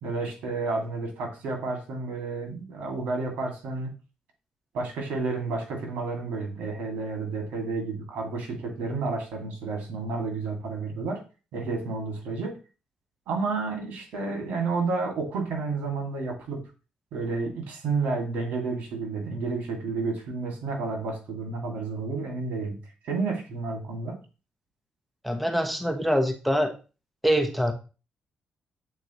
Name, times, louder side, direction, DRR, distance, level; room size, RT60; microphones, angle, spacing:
voice 1, 0.0-3.9 4.7-11.2 11.5-12.5 13.3-16.6 17.1-22.7 23.0-24.2, right 3 dB, 85° right, 1 dB, 2.3 m, -31 dB
voice 2, 25.2-26.7 27.2-27.7, equal, ahead, 5 dB, 1.1 m, -24 dB
8.2 x 4.2 x 3.1 m, 0.33 s
cardioid pair, 95°, 3 cm